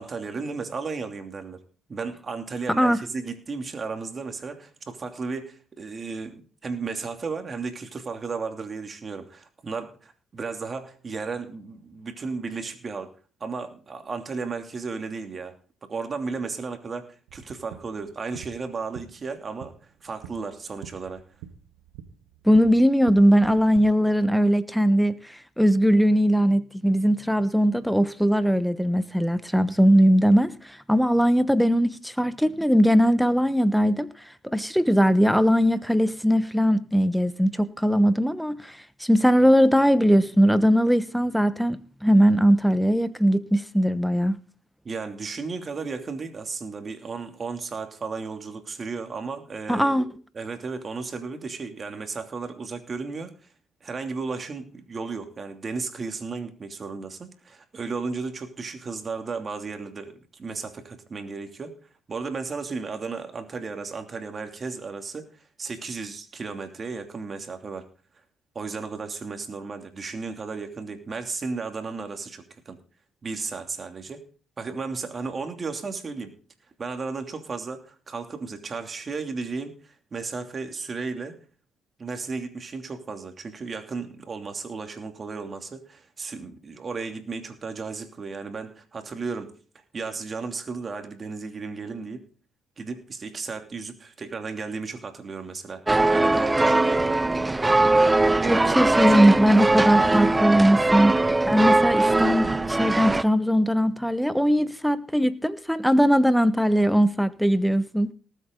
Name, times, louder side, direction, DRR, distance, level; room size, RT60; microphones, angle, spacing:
voice 1, 0.0-1.6 1.9-13.1 13.4-15.6 15.8-19.7 20.0-21.2 44.8-50.1 50.3-53.3 53.8-61.7 62.1-67.8 68.5-72.8 73.2-74.2 74.6-76.3 76.8-81.4 82.0-89.5 89.9-92.3 92.8-97.3 98.4-99.4, right 4 dB, 40° right, 2.8 m, -34 dB
voice 2, 2.7-3.0 22.4-34.1 34.4-44.4 49.7-50.0 98.5-108.1, equal, ahead, 1.1 m, -20 dB
sound 1, 17.3-23.8, right 9 dB, 85° right, 1.5 m, -45 dB
sound 2, 95.9-103.2, right 2 dB, 20° right, 0.6 m, -21 dB
19.0 x 8.3 x 3.9 m
hypercardioid pair, 60°, 0 cm